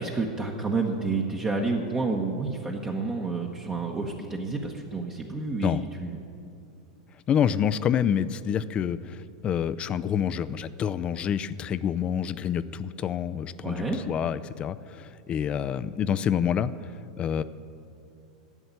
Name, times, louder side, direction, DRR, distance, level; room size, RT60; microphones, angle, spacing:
voice 1, 0.0-6.2 13.6-14.0, right 3 dB, 20° right, 1 dB, 1.0 m, -29 dB
voice 2, 7.3-16.9 17.2-17.4, left 8 dB, 30° left, 14 dB, 0.4 m, -27 dB
11.0 x 7.8 x 9.6 m, 2.5 s
hypercardioid pair, 125°, 4 cm